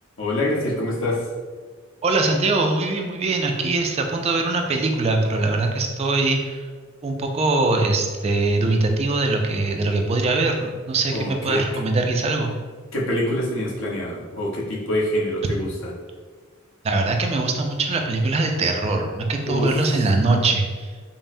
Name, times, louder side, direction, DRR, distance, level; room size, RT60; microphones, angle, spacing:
voice 1, 0.2-1.3 11.1-11.8 12.9-15.9 19.5-19.7, left 1 dB, 70° left, -3 dB, 0.8 m, -25 dB
voice 2, 2.0-6.6 7.0-12.5 16.8-20.9, right 3 dB, 30° right, 3 dB, 0.3 m, -22 dB
5.3 x 2.0 x 2.6 m, 1.5 s
head